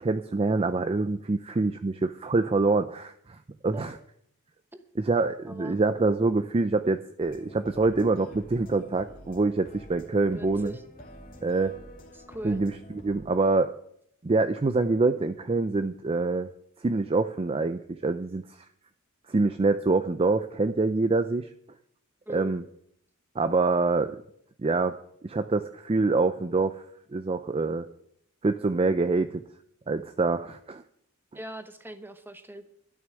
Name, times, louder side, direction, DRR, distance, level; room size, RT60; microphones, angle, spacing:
voice 1, 0.0-3.4 3.6-4.0 5.0-10.7 11.4-11.8 12.4-13.7 14.2-16.5 16.8-18.6 19.3-21.5 22.3-22.6 23.4-24.2 24.6-25.0 25.2-26.8 27.1-27.9 28.4-29.4 29.9-30.8, right 3 dB, 25° right, 10 dB, 0.4 m, -25 dB
voice 2, 5.4-5.8 10.3-10.8 12.1-12.6 22.3-22.5 31.3-32.7, equal, 10° right, 8 dB, 1.0 m, -40 dB
sound 1, 7.2-13.2, equal, 40° left, 2.3 m, -48 dB
12.5 x 6.4 x 9.5 m, 0.71 s
head